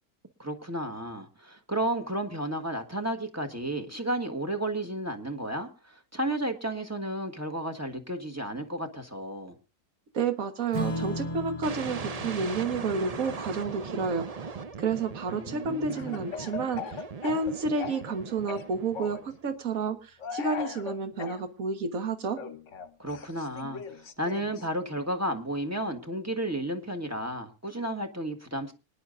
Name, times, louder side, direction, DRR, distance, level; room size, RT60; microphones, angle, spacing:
voice 1, 0.4-9.5 15.3-16.2 23.0-28.7, right 1 dB, 10° right, 5 dB, 1.5 m, -33 dB
voice 2, 10.1-14.3 14.8-16.8 17.2-22.4, right 4 dB, 60° right, 8 dB, 1.8 m, -30 dB
Strum, 10.7-17.6, left 1 dB, 30° left, 0.8 m, -39 dB
sound 1, 11.6-19.5, right 5 dB, 45° right, 0.5 m, -40 dB
Speech / Cough, 15.9-18.2 18.5-19.3 20.2-21.4 22.3-24.7, left 7 dB, 55° left, 1.2 m, -39 dB
25.5 x 10.5 x 2.6 m, 0.30 s
omnidirectional pair, 1.6 m